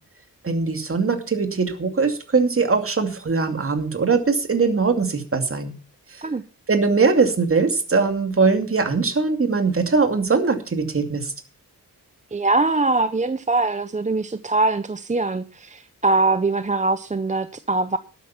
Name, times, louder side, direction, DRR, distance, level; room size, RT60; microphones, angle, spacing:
voice 1, 0.4-5.7 6.1-6.2 6.7-11.3, right 4 dB, 40° right, 6 dB, 2.5 m, -21 dB
voice 2, 12.3-18.0, right 3 dB, 20° right, 11 dB, 0.6 m, -22 dB
12.5 x 9.2 x 5.7 m, 0.36 s
wide cardioid pair, 120°, 34 cm